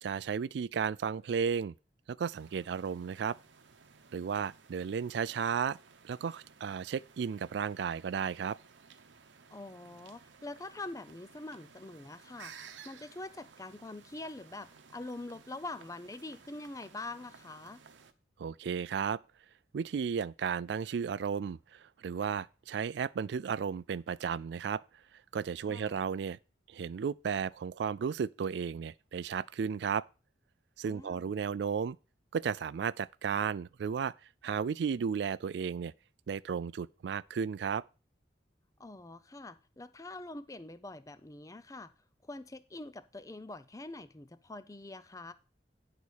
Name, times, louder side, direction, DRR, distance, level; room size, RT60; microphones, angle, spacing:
voice 1, 0.0-1.7 2.1-3.4 4.1-5.8 6.0-8.6 18.4-19.2 19.7-24.8 25.3-26.4 26.7-30.0 30.8-32.0 32.3-34.1 34.4-35.9 36.3-37.8, right 6 dB, 65° right, 0.3 m, -34 dB
sound 1, 2.3-18.1, right 6 dB, 90° right, 0.8 m, -57 dB
voice 2, 9.5-12.5 12.8-17.8 25.7-26.0 30.8-31.3 38.8-41.9 42.2-45.3, left 2 dB, 20° left, 0.5 m, -44 dB
10.0 x 4.1 x 6.4 m
head